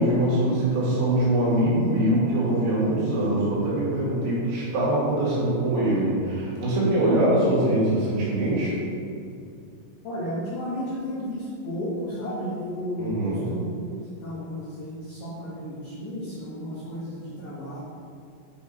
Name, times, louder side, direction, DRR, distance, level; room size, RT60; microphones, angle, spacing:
voice 1, 0.0-8.8 13.0-13.4, right 1 dB, 75° right, -7 dB, 4.4 m, -23 dB
voice 2, 10.0-13.7 14.2-17.8, equal, 75° left, -8 dB, 1.8 m, -33 dB
8.8 x 4.7 x 4.2 m, 2.4 s
omnidirectional pair, 5.3 m